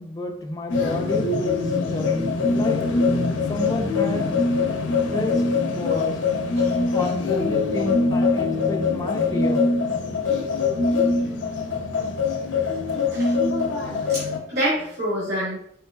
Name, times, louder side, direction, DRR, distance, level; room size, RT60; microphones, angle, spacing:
voice 1, 0.0-2.2 2.5-2.9 3.5-4.5 5.1-6.2 6.9-9.7, left 1 dB, 20° left, 0.3 m, -31 dB
sound 1, 0.7-14.4, left 4 dB, 80° left, 0.5 m, -23 dB
voice 2, 6.6-7.1 13.1-13.4 14.1-15.8, equal, 60° right, 0.8 m, -28 dB
3.4 x 3.0 x 2.2 m
head